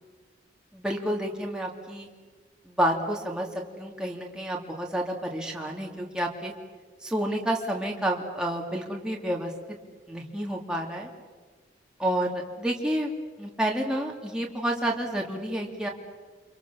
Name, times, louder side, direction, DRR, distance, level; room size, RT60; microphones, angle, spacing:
voice 1, 0.7-2.1 2.7-6.5 7.0-9.5 10.1-11.1 12.0-13.1 13.4-15.9, right 1 dB, 5° right, -1 dB, 3.0 m, -29 dB
29.5 x 25.5 x 7.2 m, 1.4 s
head